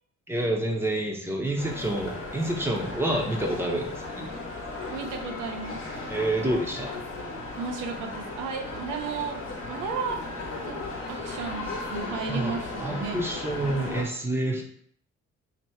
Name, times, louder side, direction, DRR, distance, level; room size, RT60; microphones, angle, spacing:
voice 1, 0.3-4.3 6.1-6.9 12.3-12.6 12.8-14.6, right 1 dB, 10° right, 0 dB, 0.9 m, -28 dB
sound 1, 1.6-14.0, left 2 dB, 45° left, 1.2 m, -36 dB
voice 2, 4.9-5.8 7.6-9.4 9.7-10.2 10.5-10.8 11.1-13.3, right 5 dB, 90° right, 4 dB, 0.7 m, -34 dB
3.0 x 3.0 x 4.5 m, 0.62 s
cardioid pair, 90°, 30 cm